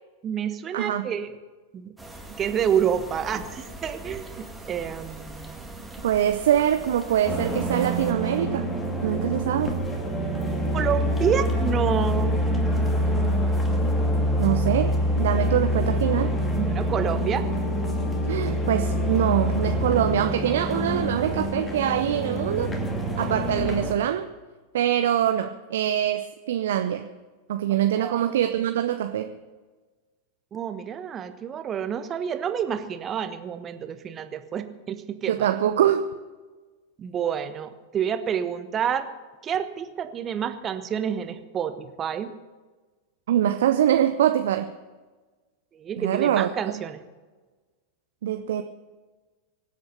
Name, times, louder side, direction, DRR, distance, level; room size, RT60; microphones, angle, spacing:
voice 1, 0.2-1.4 1.7-1.9 2.3-5.9 10.7-12.4 16.5-17.5 28.0-28.4 30.5-35.5 37.0-39.1 39.4-42.3 45.7-47.0, right 8 dB, 25° right, 10 dB, 1.3 m, -28 dB
voice 2, 0.7-1.1 6.0-8.7 9.0-9.8 14.4-16.3 18.3-22.7 23.2-24.3 24.7-27.1 27.5-29.4 35.2-36.1 43.3-44.7 46.0-46.5 48.2-48.6, right 10 dB, 60° right, 8 dB, 0.7 m, -24 dB
sound 1, 2.0-8.1, right 1 dB, 5° right, 2.2 m, -41 dB
sound 2, 7.2-23.9, equal, 15° left, 2.4 m, -25 dB
24.5 x 8.2 x 6.8 m, 1.3 s
figure-of-eight pair, 90°, 0 cm